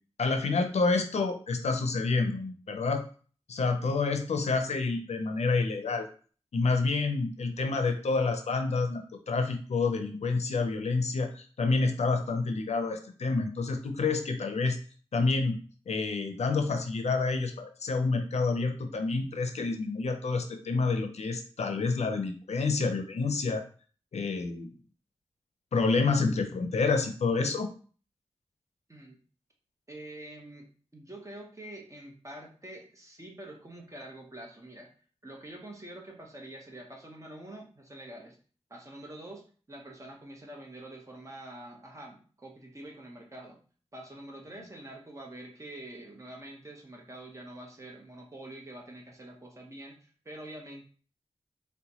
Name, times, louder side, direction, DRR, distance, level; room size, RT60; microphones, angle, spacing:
voice 1, 0.2-3.0 3.5-6.1 6.5-9.0 9.3-14.8 15.1-15.6 15.9-23.6 24.1-24.7 25.7-27.7, left 4 dB, 90° left, 6 dB, 0.5 m, -28 dB
voice 2, 29.9-30.6 30.9-34.9 35.2-38.4 38.7-43.6 43.9-50.8, right 1 dB, 30° right, 0 dB, 0.9 m, -46 dB
4.0 x 2.1 x 2.9 m, 0.41 s
wide cardioid pair, 70°, 11 cm